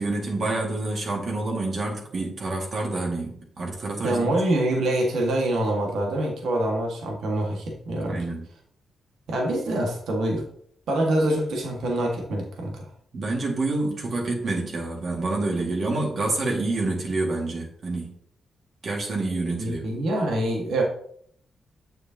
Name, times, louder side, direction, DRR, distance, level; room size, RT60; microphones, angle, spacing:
voice 1, 0.0-4.5 8.1-8.5 13.1-18.2 18.8-19.8, right 2 dB, 60° right, -1 dB, 2.1 m, -28 dB
voice 2, 4.0-8.2 9.3-10.4 10.9-12.9 19.6-20.8, right 1 dB, 80° right, 0 dB, 1.8 m, -25 dB
7.5 x 6.5 x 2.9 m, 0.63 s
cardioid pair, 70°, 0 cm